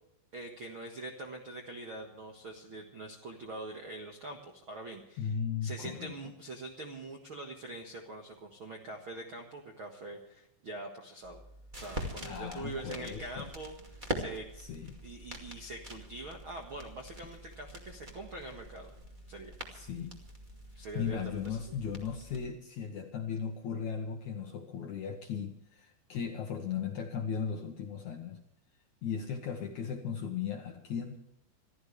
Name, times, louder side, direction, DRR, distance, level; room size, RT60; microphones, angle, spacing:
voice 1, 0.3-5.3 5.6-11.4 11.7-14.5 15.0-18.9 19.3-19.5 20.7-21.7, right 2 dB, 80° right, 2 dB, 1.1 m, -44 dB
voice 2, 5.2-6.1 12.2-13.5 14.6-15.0 19.7-20.2 20.9-28.4 29.0-31.2, left 7 dB, 75° left, 3 dB, 1.8 m, -37 dB
sound 1, 11.2-22.5, right 1 dB, 45° right, 0.6 m, -44 dB
26.0 x 14.0 x 3.3 m, 0.81 s
omnidirectional pair, 5.2 m